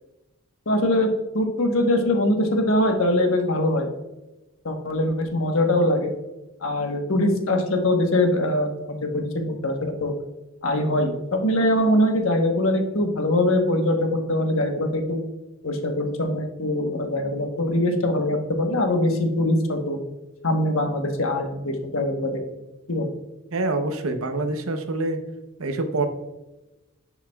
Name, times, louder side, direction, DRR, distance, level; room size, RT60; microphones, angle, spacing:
voice 1, 0.7-3.9 4.6-6.1 6.6-10.1 10.6-15.2 15.6-20.0 20.4-22.3 22.9-23.1, left 1 dB, 85° left, 4 dB, 1.1 m, -22 dB
voice 2, 23.5-25.2 25.6-26.1, right 2 dB, 90° right, 7 dB, 0.8 m, -26 dB
10.5 x 5.7 x 2.3 m, 1.0 s
head